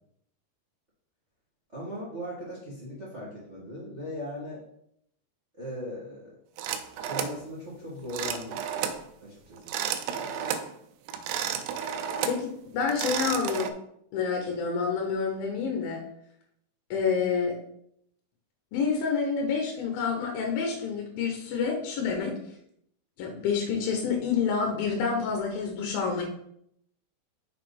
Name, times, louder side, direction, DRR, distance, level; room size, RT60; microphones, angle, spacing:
voice 1, 1.7-4.6 5.6-6.3 7.0-8.6 9.2-9.6, equal, 50° right, -7 dB, 0.8 m, -38 dB
sound 1, 6.6-7.4 8.1-9.0 9.6-10.7 11.1-12.4 12.8-13.7, right 8 dB, 90° right, 2.8 m, -32 dB
voice 2, 12.3-13.7 14.1-16.0 16.9-17.6 18.7-22.4 23.2-26.2, left 5 dB, 75° left, 2 dB, 2.4 m, -28 dB
6.5 x 4.1 x 5.1 m, 0.72 s
omnidirectional pair, 5.0 m